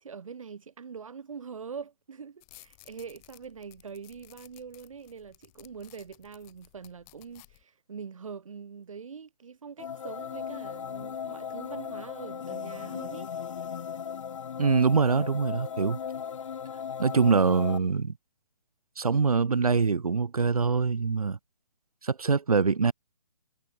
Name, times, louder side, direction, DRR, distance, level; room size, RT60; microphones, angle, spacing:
voice 1, 0.0-13.3, right 6 dB, 65° right, 1.2 m, -43 dB
sound 1, 2.4-7.6, left 37 dB, 25° left, 4.0 m, -57 dB
sound 2, 9.8-17.8, left 7 dB, 60° left, 0.6 m, -37 dB
voice 2, 14.6-16.0 17.0-18.1 19.0-21.4 22.0-22.9, right 5 dB, 80° right, 0.9 m, -24 dB
figure-of-eight pair, 140°, 18 cm